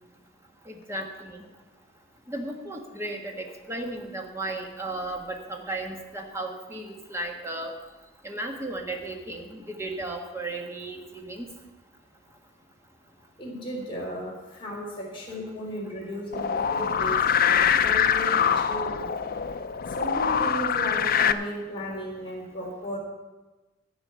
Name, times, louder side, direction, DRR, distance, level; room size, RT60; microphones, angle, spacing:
voice 1, 0.7-1.4 2.3-7.7 8.2-11.5, right 2 dB, 15° right, 2 dB, 1.5 m, -35 dB
voice 2, 13.4-19.2 20.0-23.0, equal, 25° left, -4 dB, 3.3 m, -35 dB
sound 1, 16.3-21.3, left 8 dB, 50° left, 0.5 m, -24 dB
14.0 x 5.1 x 9.4 m, 1.2 s
head